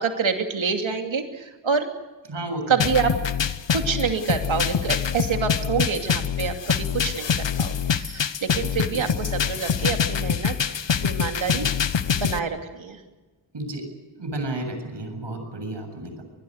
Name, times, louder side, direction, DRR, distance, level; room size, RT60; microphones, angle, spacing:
voice 1, 0.0-1.9 2.7-3.1 3.7-10.5 11.0-11.7 12.1-13.0, right 6 dB, 90° right, 4 dB, 2.8 m, -27 dB
voice 2, 2.3-2.9 8.9-9.0 9.4-9.6 13.5-13.8 14.2-16.2, right 2 dB, 65° right, 6 dB, 7.6 m, -32 dB
sound 1, 2.8-12.4, left 7 dB, 75° left, 1.2 m, -25 dB
25.5 x 21.0 x 6.6 m, 1.2 s
wide cardioid pair, 85°, 45 cm